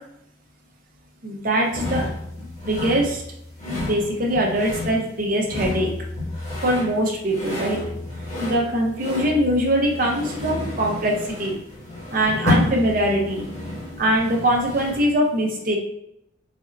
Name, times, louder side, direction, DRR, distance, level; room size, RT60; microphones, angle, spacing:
voice 1, 1.2-2.0 2.6-3.2 3.8-5.9 6.6-7.8 8.4-11.6 12.1-13.4 14.0-15.7, right 1 dB, 45° right, 0 dB, 0.8 m, -22 dB
sound 1, 1.7-15.2, left 2 dB, 35° left, 1.5 m, -30 dB
4.2 x 2.7 x 2.5 m, 0.78 s
head